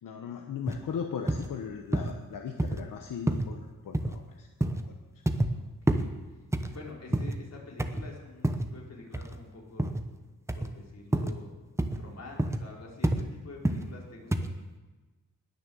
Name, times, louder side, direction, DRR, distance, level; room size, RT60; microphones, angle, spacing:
voice 1, 0.0-4.9, left 7 dB, 85° left, 4 dB, 1.2 m, -38 dB
sound 1, 0.7-0.8 1.3-1.5 1.9-2.2 2.6-2.8 3.3-3.5 3.9-4.2 4.6-4.8 5.3-5.5 5.9-6.1 6.5-7.4 7.8-8.1 8.4-8.7 9.1-9.4 9.8-10.0 10.5-10.7 11.1-11.4 11.8-12.0 12.4-12.6 13.0-13.2 13.6-13.9 14.3-14.5, right 1 dB, 10° right, 0.9 m, -28 dB
voice 2, 5.5-6.1 6.7-9.9 10.5-11.5 12.0-14.5, left 3 dB, 55° left, -2 dB, 4.0 m, -47 dB
20.0 x 6.8 x 7.7 m, 1.2 s
wide cardioid pair, 115°, 32 cm